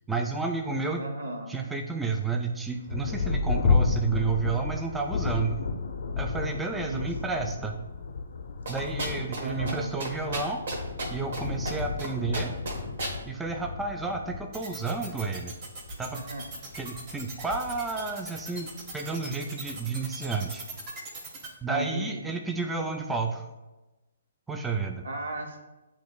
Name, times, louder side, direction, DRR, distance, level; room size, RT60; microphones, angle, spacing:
voice 1, 0.1-1.0 1.5-5.6 6.2-7.8 8.7-10.6 11.1-12.6 13.3-15.5 16.0-16.2 16.7-20.6 21.6-23.5 24.5-25.0, right 4 dB, 5° right, 3 dB, 0.3 m, -31 dB
voice 2, 1.0-1.6 6.7-7.1 9.4-9.9 16.1-16.4 21.7-22.3 25.0-25.6, right 1 dB, 80° right, 2 dB, 1.0 m, -35 dB
Thunder, 2.9-18.9 19.7-19.8 20.3-20.8, left 4 dB, 65° left, 0.5 m, -32 dB
sound 1, 8.7-9.4 9.7-9.8 10.0-11.4 11.6-12.1 12.3-13.1, right 2 dB, 65° right, 1.2 m, -32 dB
sound 2, 14.5-21.5, right 3 dB, 35° right, 1.0 m, -40 dB
7.4 x 3.1 x 2.3 m, 1.1 s
hypercardioid pair, 150°, 0 cm